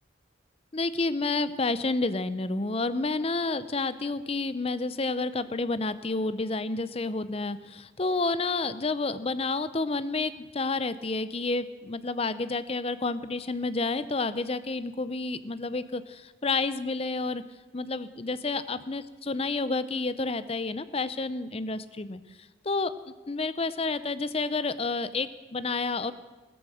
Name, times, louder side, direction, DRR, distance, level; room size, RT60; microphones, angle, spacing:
voice 1, 0.7-17.4 17.7-22.2 22.6-26.1, left 3 dB, 30° left, 14 dB, 0.6 m, -30 dB
15.5 x 14.0 x 6.3 m, 1.2 s
head